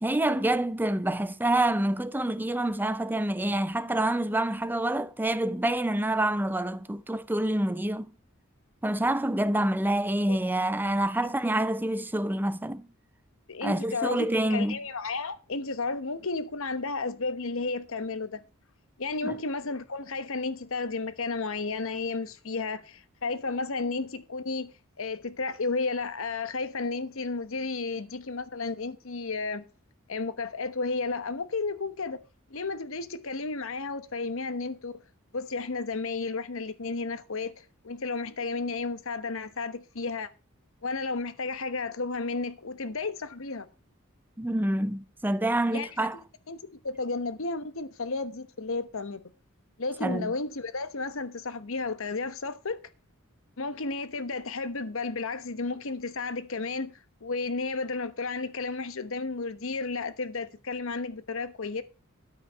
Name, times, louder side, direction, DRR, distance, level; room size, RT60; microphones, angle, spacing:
voice 1, 0.0-8.1 8.8-12.9 13.6-14.8 19.2-19.3 44.4-46.2 50.0-50.3, right 1 dB, 10° right, 0.5 m, -27 dB
voice 2, 13.5-18.4 19.0-29.7 30.1-32.2 32.5-34.9 35.3-40.3 40.8-43.7 45.7-45.9 46.5-46.6 46.8-49.2 49.8-52.8 53.6-61.8, left 3 dB, 70° left, 1.1 m, -33 dB
13.0 x 5.6 x 5.7 m
head